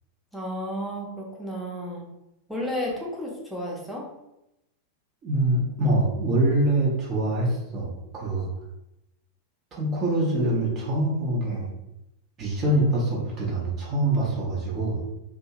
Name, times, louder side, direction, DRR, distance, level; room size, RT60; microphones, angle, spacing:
voice 1, 0.3-2.0 2.5-4.1, equal, ahead, -4 dB, 0.8 m, -32 dB
voice 2, 5.2-8.5 9.7-11.7 12.4-15.0, right 1 dB, 30° right, -5 dB, 0.8 m, -24 dB
2.7 x 2.3 x 2.9 m, 0.89 s
figure-of-eight pair, 90°, 0 cm